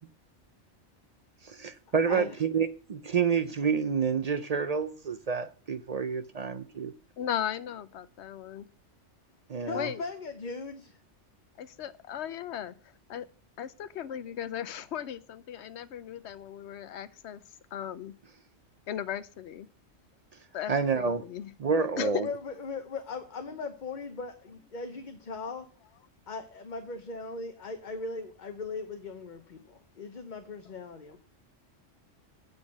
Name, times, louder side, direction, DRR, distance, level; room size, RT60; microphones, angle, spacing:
voice 1, 1.6-6.9 9.5-9.9 20.7-21.2 21.6-22.3, right 6 dB, 50° right, 0.5 m, -28 dB
voice 2, 7.2-8.7 9.7-10.0 11.6-12.7 13.1-13.3 13.6-17.4 17.7-18.1 18.9-19.7 20.5-21.5 22.0-22.3, left 10 dB, 70° left, 0.9 m, -37 dB
voice 3, 9.6-11.0 22.0-25.7 26.3-31.2, left 4 dB, 45° left, 1.0 m, -38 dB
8.0 x 6.2 x 7.3 m
omnidirectional pair, 1.2 m